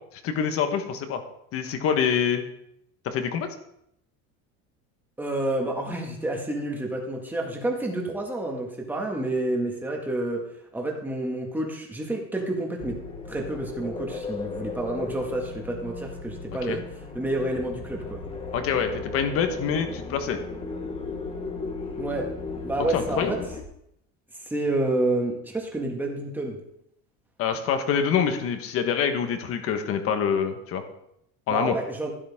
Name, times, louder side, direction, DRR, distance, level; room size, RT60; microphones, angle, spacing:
voice 1, 0.1-1.2 1.5-2.4 3.0-3.5 16.7-16.8 18.5-20.4 22.9-23.3 27.4-30.8 31.5-31.7, left 7 dB, 40° left, 7 dB, 1.4 m, -25 dB
voice 2, 5.2-10.4 10.7-13.0 13.3-16.8 17.1-18.2 22.0-22.3 22.6-23.4 24.4-26.6 31.5-32.1, right 1 dB, 5° right, 0 dB, 1.9 m, -29 dB
sound 1, 12.8-23.6, left 4 dB, 15° left, 1.3 m, -36 dB
13.0 x 12.5 x 3.7 m, 0.75 s
cardioid pair, 170°, 34 cm